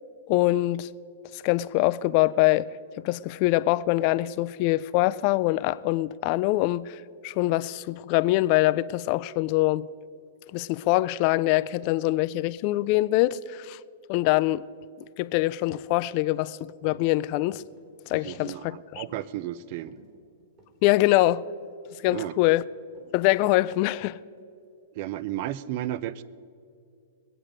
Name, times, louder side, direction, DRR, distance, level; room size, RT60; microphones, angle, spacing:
voice 1, 0.3-0.9 1.3-2.7 3.0-7.0 7.2-9.8 10.5-13.8 14.1-14.6 15.2-16.6 16.8-17.6 18.1-19.0 20.8-21.4 22.0-22.6 23.1-24.2, left 17 dB, 40° left, 0.3 m, -24 dB
sound 1, 16.8-17.1 17.5-17.8 18.3-18.6 19.1-19.3 19.8-20.8 21.3-21.6 21.9-22.4 22.9-23.1 23.8-24.0, right 1 dB, 30° right, 3.9 m, -54 dB
voice 2, 18.1-20.0 22.1-22.4 24.9-26.2, right 13 dB, 45° right, 0.5 m, -33 dB
21.5 x 8.9 x 5.0 m
hypercardioid pair, 145°, 0 cm